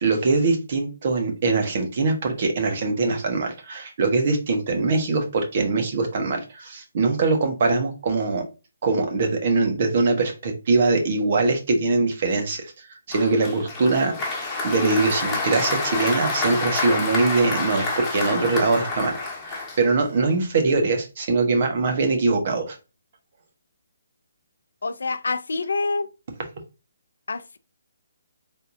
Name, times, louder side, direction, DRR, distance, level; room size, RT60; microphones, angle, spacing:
voice 1, 0.0-8.4 8.8-14.1 14.6-19.2 19.5-22.8, right 3 dB, 45° right, 1.3 m, -22 dB
Applause, 13.1-20.2, left 3 dB, 15° left, 1.4 m, -28 dB
voice 2, 24.8-26.1 27.3-27.6, left 3 dB, 75° left, 0.4 m, -26 dB
4.2 x 3.7 x 2.6 m
figure-of-eight pair, 145°, 0 cm